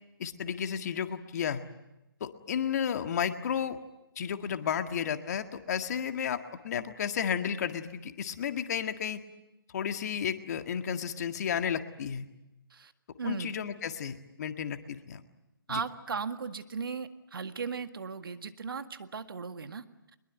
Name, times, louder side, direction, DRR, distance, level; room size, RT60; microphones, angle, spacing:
voice 1, 0.2-1.6 2.2-3.8 4.2-9.2 9.7-12.3 13.2-15.2 15.7-15.8, left 8 dB, 45° left, 8 dB, 1.8 m, -32 dB
voice 2, 13.2-13.5 15.7-19.8, right 5 dB, 70° right, 9 dB, 1.9 m, -37 dB
23.5 x 22.0 x 9.2 m, 0.94 s
hypercardioid pair, 150°, 12 cm